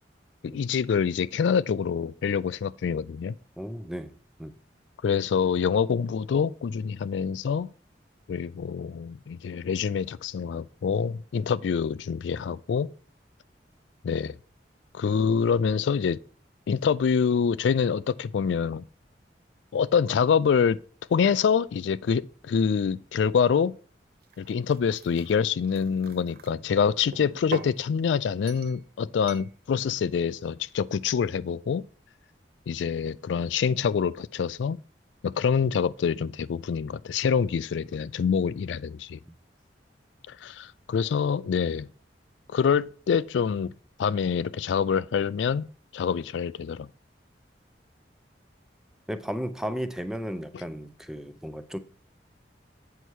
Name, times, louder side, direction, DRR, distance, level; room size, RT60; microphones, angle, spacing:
voice 1, 0.4-3.4 5.0-7.7 8.3-12.9 14.0-14.4 14.9-16.2 16.7-18.8 19.7-20.8 21.1-23.7 24.4-31.8 32.7-34.8 35.2-39.2 40.3-41.9 42.5-43.7 44.0-45.7 45.9-46.9, left 6 dB, 85° left, 0.3 m, -26 dB
voice 2, 3.6-4.1 4.4-4.5 39.3-39.4 49.1-51.8, equal, 5° right, 0.5 m, -34 dB
sound 1, 24.2-26.5 27.1-27.8 28.5-28.8 29.3-29.5, right 5 dB, 55° right, 0.5 m, -42 dB
8.2 x 5.6 x 4.6 m
head